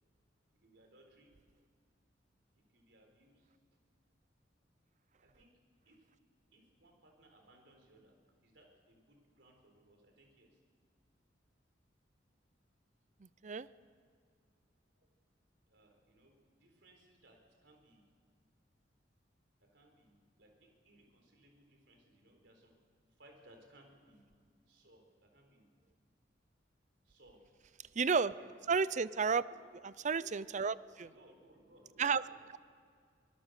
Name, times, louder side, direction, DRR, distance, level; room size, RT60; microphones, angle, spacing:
voice 1, 0.5-1.3 2.5-3.5 5.2-5.5 5.8-6.1 6.5-8.2 8.4-10.6 15.7-18.1 19.6-22.7 23.2-24.3 24.7-25.7 27.0-27.5 27.8-27.9 28.2-28.5 29.4-29.7 30.1-30.6 30.9-32.4, right 1 dB, 70° right, 3 dB, 4.4 m, -64 dB
voice 2, 28.0-28.3 28.7-29.4 30.0-30.7 32.0-32.2, right 5 dB, 40° right, 17 dB, 0.5 m, -31 dB
25.0 x 20.0 x 6.6 m, 2.1 s
head